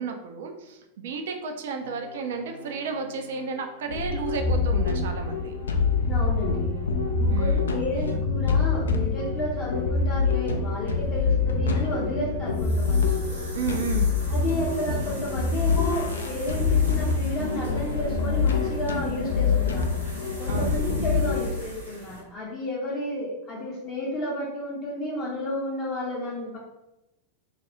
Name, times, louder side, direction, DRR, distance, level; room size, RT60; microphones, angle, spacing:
voice 1, 0.0-5.5 7.3-7.8 13.6-14.2 20.5-20.8, right 5 dB, 60° right, 5 dB, 0.4 m, -32 dB
sound 1, 1.8-7.7 8.7-15.7 16.5-18.7, equal, 85° left, 0.8 m, -47 dB
sound 2, 3.9-21.5, left 4 dB, 70° left, 0.3 m, -25 dB
voice 2, 6.0-6.8 7.2-13.1 14.3-20.0 20.4-26.6, equal, 30° left, -6 dB, 0.6 m, -32 dB
sound 3, 11.0-22.2, right 1 dB, 80° right, 1.0 m, -43 dB
2.4 x 2.2 x 2.9 m, 0.93 s
figure-of-eight pair, 90°, 0 cm